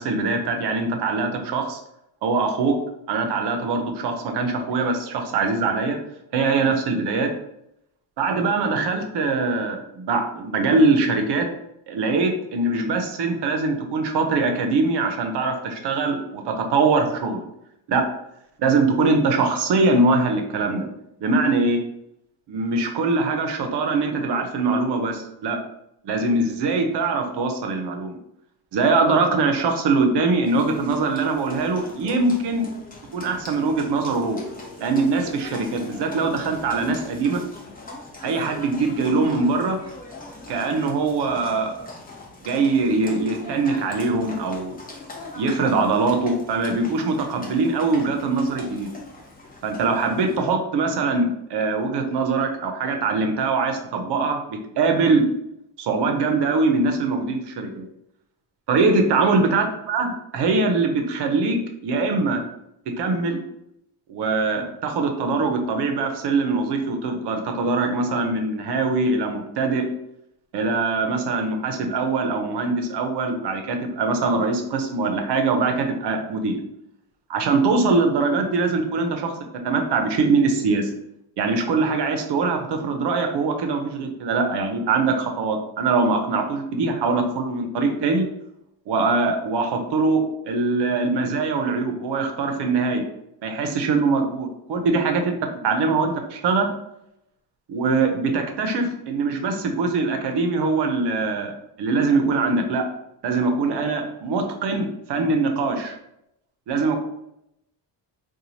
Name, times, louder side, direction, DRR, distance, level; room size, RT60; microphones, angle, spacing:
voice 1, 0.0-1.8 2.2-2.8 3.1-6.0 6.3-7.3 8.2-11.5 11.9-17.4 17.9-18.1 18.6-20.9 21.2-21.8 22.5-25.6 26.0-28.2 28.7-32.7 33.1-34.4 34.8-37.4 38.2-39.8 40.5-41.8 42.5-44.8 45.3-48.9 49.6-55.2 55.8-57.9 58.7-61.6 61.8-62.4 63.0-63.4 64.1-69.9 70.5-76.6 77.3-79.3 79.6-80.9 81.4-88.3 88.9-93.0 93.4-95.4 95.6-96.7 97.7-101.5 101.8-102.9 103.2-106.0 106.7-107.0, right 3 dB, 65° right, 4 dB, 0.6 m, -22 dB
Livestock farm animals working animals, 30.4-50.4, left 2 dB, 20° left, 0.6 m, -41 dB
2.9 x 2.3 x 2.6 m, 0.81 s
cardioid pair, 100°, 44 cm